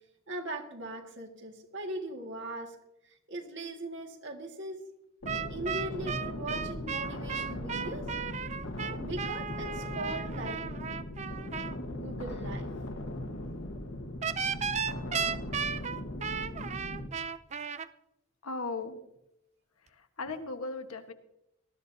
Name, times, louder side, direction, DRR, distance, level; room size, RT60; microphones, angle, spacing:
voice 1, 0.3-2.8 3.0-4.8 5.5-8.2 9.0-10.7 11.9-12.7 18.8-18.9, right 1 dB, 55° right, 3 dB, 2.0 m, -40 dB
sound 1, 5.2-17.1, left 1 dB, 65° left, 1.4 m, -39 dB
sound 2, 5.3-11.7 14.2-17.9, right 6 dB, 30° right, 0.4 m, -35 dB
voice 2, 18.4-19.0 19.9-21.1, left 3 dB, 85° left, 6 dB, 1.3 m, -37 dB
19.5 x 13.0 x 2.8 m, 0.86 s
head